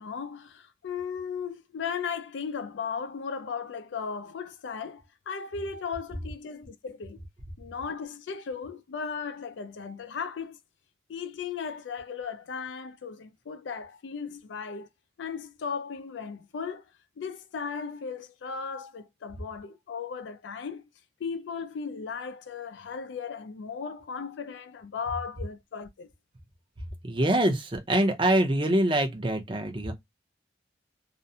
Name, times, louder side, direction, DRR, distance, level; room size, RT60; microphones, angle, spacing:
voice 1, 0.0-7.2 7.6-10.6 11.1-14.9 15.2-16.8 17.2-20.8 21.2-26.1, left 6 dB, 85° left, 0.4 m, -36 dB
voice 2, 27.0-29.9, right 1 dB, 30° right, 0.6 m, -24 dB
2.4 x 2.0 x 2.7 m
head